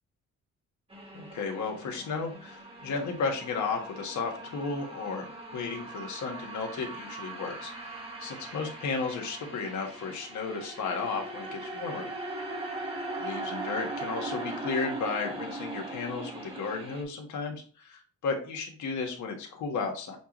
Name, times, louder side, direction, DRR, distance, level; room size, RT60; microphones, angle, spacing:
sound 1, 0.9-17.0, right 2 dB, 20° right, 1.3 m, -40 dB
voice 1, 1.1-5.3 5.5-12.1 13.2-20.2, left 4 dB, 70° left, 2 dB, 1.4 m, -34 dB
7.0 x 2.4 x 3.0 m, 0.40 s
cardioid pair, 90°, 30 cm